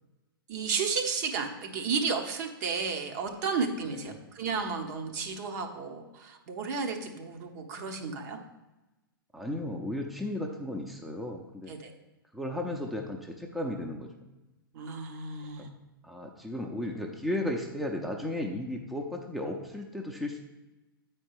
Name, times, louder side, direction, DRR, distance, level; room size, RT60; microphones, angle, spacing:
voice 1, 0.5-8.4 11.7-11.9 14.7-15.7, right 5 dB, 50° right, 3 dB, 1.0 m, -33 dB
voice 2, 3.9-4.2 9.3-11.7 12.3-14.1 15.6-15.7 16.0-20.4, left 1 dB, ahead, 1 dB, 0.6 m, -35 dB
8.6 x 4.6 x 4.8 m, 1.1 s
figure-of-eight pair, 105°, 12 cm